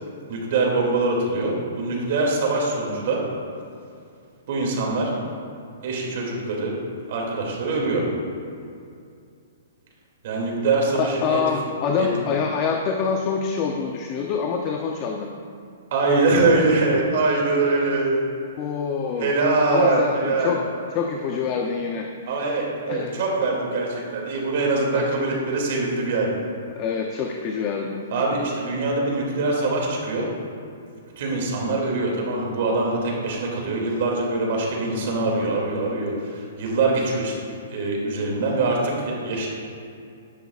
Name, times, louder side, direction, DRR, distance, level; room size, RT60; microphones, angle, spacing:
voice 1, 0.3-3.2 4.5-5.1 5.8-6.7 7.1-8.0 10.2-11.4 12.0-12.1 15.9-18.3 19.2-20.6 22.3-26.3 28.1-30.3 31.2-37.3 37.7-39.5, right 3 dB, 50° right, -2 dB, 2.5 m, -23 dB
voice 2, 11.0-15.3 18.6-19.3 19.7-20.6 20.9-22.4 22.9-23.2 24.9-25.1 26.7-28.0, left 6 dB, 30° left, 2 dB, 0.6 m, -26 dB
12.0 x 10.0 x 2.4 m, 2.4 s
hypercardioid pair, 160°, 0 cm